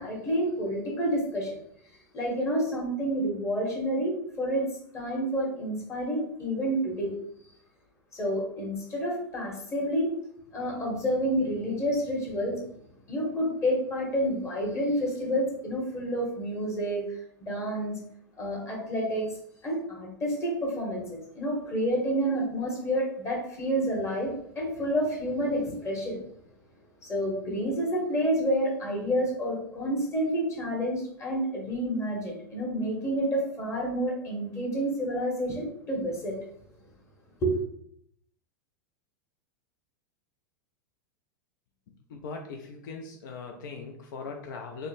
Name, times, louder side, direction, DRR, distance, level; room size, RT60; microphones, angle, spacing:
voice 1, 0.0-1.6 2.1-4.7 4.9-7.1 8.1-10.1 10.5-12.6 13.1-18.0 18.4-19.3 19.6-26.2 27.0-36.4 37.4-37.6, equal, 25° left, -2 dB, 1.0 m, -29 dB
voice 2, 42.1-44.9, left 4 dB, 65° left, 3 dB, 0.4 m, -40 dB
3.7 x 2.1 x 2.5 m, 0.69 s
hypercardioid pair, 100°, 11 cm